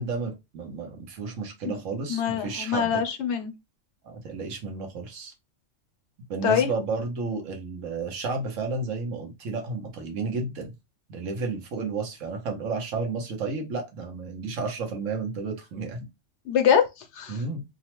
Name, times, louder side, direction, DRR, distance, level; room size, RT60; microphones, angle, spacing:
voice 1, 0.0-2.9 4.0-5.3 6.3-10.7 11.1-16.0 17.3-17.6, right 4 dB, 85° right, 1.2 m, -32 dB
voice 2, 2.1-3.5 6.4-6.7 16.5-17.4, left 8 dB, 70° left, 0.8 m, -24 dB
3.0 x 2.1 x 2.9 m
omnidirectional pair, 1.3 m